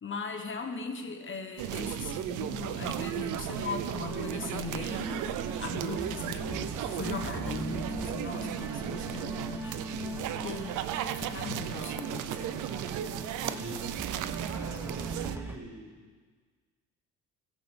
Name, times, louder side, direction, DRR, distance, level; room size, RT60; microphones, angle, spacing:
voice 1, 0.0-5.3 5.6-9.8 10.4-10.8 11.2-12.9, left 4 dB, 40° left, 5 dB, 1.2 m, -39 dB
sound 1, 1.6-15.4, right 11 dB, 85° right, 0.6 m, -35 dB
sound 2, 4.0-15.6, equal, 10° right, 0.8 m, -41 dB
voice 2, 13.4-13.9 14.5-15.9, right 2 dB, 55° right, -5 dB, 4.1 m, -43 dB
13.5 x 7.7 x 5.6 m, 1.5 s
cardioid pair, 90°, 30 cm